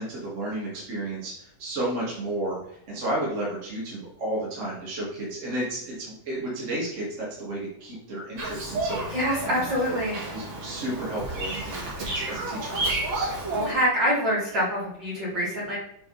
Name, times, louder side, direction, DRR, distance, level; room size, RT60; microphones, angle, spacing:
voice 1, 0.0-9.0 9.4-9.6 10.3-13.3, right 1 dB, 40° right, -6 dB, 2.1 m, -32 dB
Bird vocalization bird call bird song, 8.4-13.7, right 2 dB, 80° right, 3.0 m, -31 dB
voice 2, 9.1-10.2 13.5-15.8, equal, 60° right, -8 dB, 3.7 m, -25 dB
7.4 x 4.1 x 4.0 m, 0.73 s
omnidirectional pair, 2.2 m